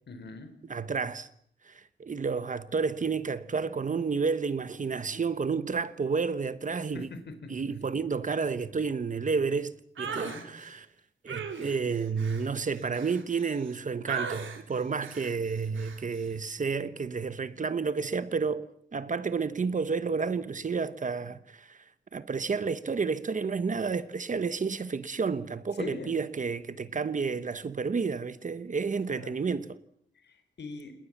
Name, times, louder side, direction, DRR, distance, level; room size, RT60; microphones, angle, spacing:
voice 1, 0.1-0.5 6.9-7.5 10.0-10.4 25.8-26.1 29.1-29.3 30.2-30.9, left 3 dB, 60° left, 4.1 m, -41 dB
voice 2, 0.7-1.3 1.6-7.1 7.5-10.9 11.2-21.8 22.1-29.7, right 5 dB, 40° right, 1.2 m, -31 dB
sound 1, 10.0-10.4 11.3-13.7 14.1-14.6 15.0-15.3 15.8-16.0, right 5 dB, 80° right, 3.7 m, -38 dB
28.0 x 20.5 x 7.4 m
wide cardioid pair, 135°, 20 cm